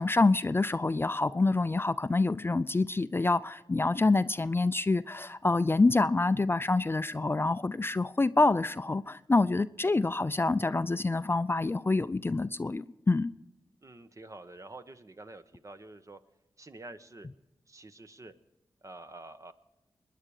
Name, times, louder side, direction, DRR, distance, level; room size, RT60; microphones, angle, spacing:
voice 1, 0.0-13.3, left 3 dB, 25° left, 14 dB, 0.4 m, -27 dB
voice 2, 13.8-16.2 16.6-17.3 17.7-18.3 18.8-19.5, right 2 dB, 35° right, 9 dB, 1.1 m, -48 dB
22.5 x 10.5 x 4.9 m, 0.95 s
cardioid pair, 45°, 9 cm